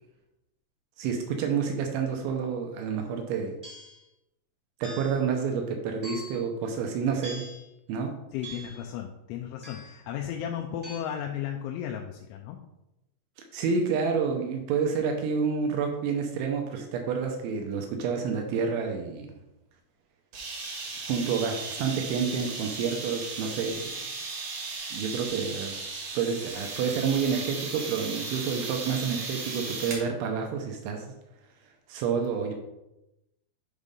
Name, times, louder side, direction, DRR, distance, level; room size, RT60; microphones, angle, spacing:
voice 1, 1.0-3.6 4.8-7.5 7.9-8.1 13.5-19.3 21.1-23.9 24.9-25.8 26.1-31.1 31.9-32.5, right 6 dB, 80° right, 3 dB, 2.9 m, -29 dB
sound 1, 3.6-4.0 4.8-5.3 6.0-6.5 7.2-7.7 8.4-8.9 9.6-10.0 10.8-11.0, right 1 dB, 15° right, 1.1 m, -43 dB
voice 2, 8.3-12.6, left 9 dB, 85° left, 2 dB, 2.7 m, -35 dB
sound 2, 20.3-30.1, right 4 dB, 55° right, 2.2 m, -36 dB
8.2 x 3.6 x 5.3 m, 0.92 s
omnidirectional pair, 5.9 m